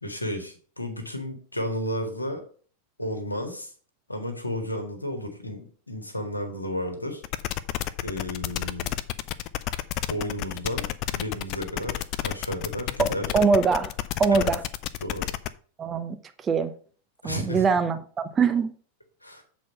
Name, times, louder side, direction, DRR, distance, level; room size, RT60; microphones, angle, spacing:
voice 1, 0.0-2.4 3.0-3.7 4.1-7.2 8.0-8.9 10.1-13.3 14.3-14.5 15.0-15.3 17.2-17.7 19.2-19.4, equal, 85° left, 1.7 m, -32 dB
sound 1, 7.2-15.5, left 13 dB, 40° left, 0.4 m, -31 dB
voice 2, 13.3-13.9 14.2-14.6 15.8-16.2 16.4-16.7 17.2-18.7, right 5 dB, 20° right, 0.8 m, -22 dB
7.7 x 4.3 x 5.6 m
figure-of-eight pair, 90°, 0 cm